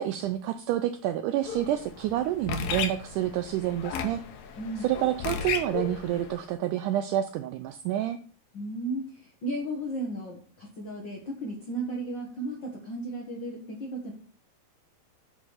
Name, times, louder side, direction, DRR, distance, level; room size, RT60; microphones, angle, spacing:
voice 1, 0.0-4.2 4.8-8.2, right 12 dB, 85° right, 9 dB, 1.8 m, -28 dB
sound 1, 1.4-6.4, left 7 dB, 75° left, 2.8 m, -35 dB
voice 2, 8.5-14.1, right 1 dB, 55° left, -1 dB, 1.2 m, -35 dB
7.1 x 5.5 x 6.3 m, 0.43 s
omnidirectional pair, 4.1 m